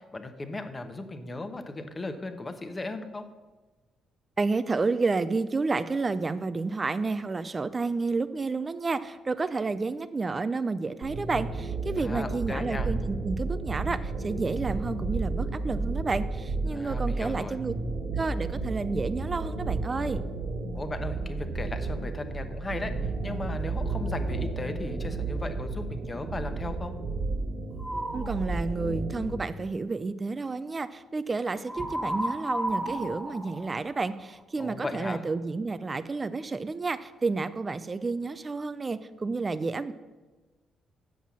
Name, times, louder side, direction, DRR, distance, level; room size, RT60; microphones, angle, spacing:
voice 1, 0.0-3.3 12.0-12.9 16.7-17.6 20.7-26.9 34.6-35.2, left 2 dB, 25° left, 8 dB, 0.9 m, -36 dB
voice 2, 4.4-17.7 18.2-20.2 28.1-39.9, right 3 dB, 30° right, 13 dB, 0.4 m, -30 dB
sound 1, 11.0-29.5, right 3 dB, 55° right, 1.5 m, -32 dB
sound 2, 27.8-28.4 31.7-34.4, right 1 dB, ahead, 1.5 m, -33 dB
7.4 x 5.6 x 7.3 m, 1.3 s
cardioid pair, 90°, 0 cm